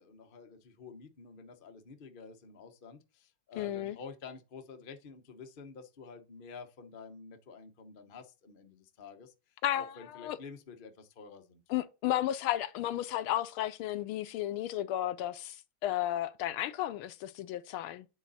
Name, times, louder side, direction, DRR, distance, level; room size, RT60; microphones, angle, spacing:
voice 1, 0.0-9.3 9.7-11.6, left 5 dB, 50° left, 0.6 m, -49 dB
voice 2, 3.6-4.0 9.6-10.4 11.7-18.1, left 13 dB, 75° left, 1.4 m, -33 dB
9.2 x 4.1 x 4.0 m
omnidirectional pair, 2.4 m